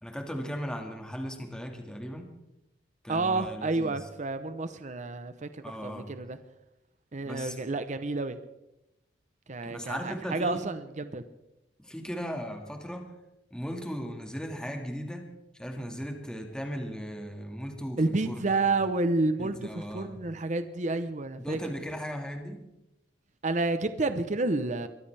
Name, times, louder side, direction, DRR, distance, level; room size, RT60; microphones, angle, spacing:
voice 1, 0.0-2.3 3.0-4.0 5.6-6.1 7.2-7.6 9.6-10.6 11.8-13.1 13.5-15.3 15.6-18.8 19.4-20.2 21.4-22.6, equal, 5° left, 3 dB, 1.9 m, -37 dB
voice 2, 3.1-6.4 7.1-8.4 9.5-11.2 18.0-21.6 23.4-24.9, right 3 dB, 40° right, 11 dB, 0.8 m, -30 dB
23.0 x 14.0 x 3.4 m, 0.90 s
head